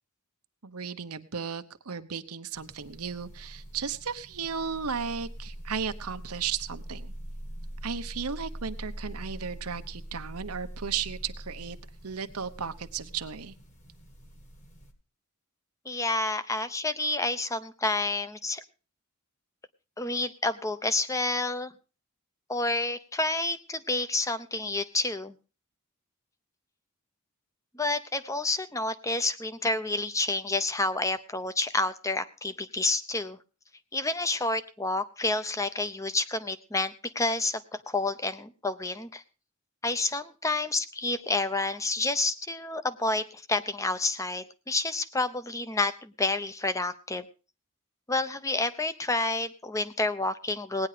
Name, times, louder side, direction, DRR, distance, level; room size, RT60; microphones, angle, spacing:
voice 1, 0.6-7.1 7.8-11.8 12.0-13.5, right 6 dB, 85° right, 10 dB, 1.0 m, -35 dB
sound 1, 2.5-14.9, equal, 35° left, 1.9 m, -43 dB
voice 2, 15.9-18.6 20.0-21.7 22.5-25.3 27.7-33.4 33.9-37.6 37.9-39.2 39.8-47.3 48.1-50.9, left 2 dB, 15° left, 12 dB, 0.7 m, -29 dB
18.0 x 9.8 x 5.0 m, 0.35 s
head